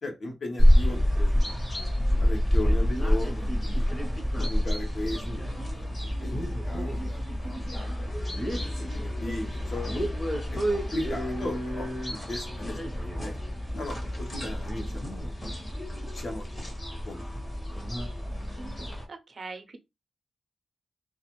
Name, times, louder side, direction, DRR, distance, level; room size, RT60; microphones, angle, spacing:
voice 1, 0.0-1.0 1.3-1.5 2.2-3.9 4.4-7.9 8.5-10.1 10.5-13.4 13.7-15.3 16.1-16.8 17.0-17.2, left 2 dB, 55° left, 0.9 m, -37 dB
sound 1, 0.6-19.0, equal, 30° left, 0.9 m, -28 dB
voice 2, 19.1-19.8, right 4 dB, 45° right, 0.5 m, -41 dB
2.4 x 2.3 x 3.0 m
wide cardioid pair, 135°, 0 cm